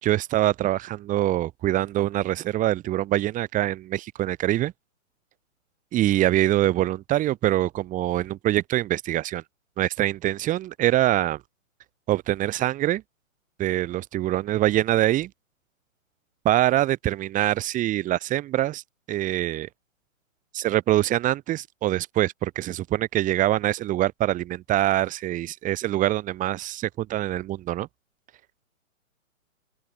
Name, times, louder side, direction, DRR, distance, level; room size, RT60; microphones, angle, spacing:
voice 1, 0.0-4.7 5.9-9.4 9.8-11.4 12.1-13.0 13.6-15.3 16.4-18.8 19.1-19.7 20.5-27.9, right 14 dB, 20° right, 2.8 m, -24 dB
open air
hypercardioid pair, 140°, 41 cm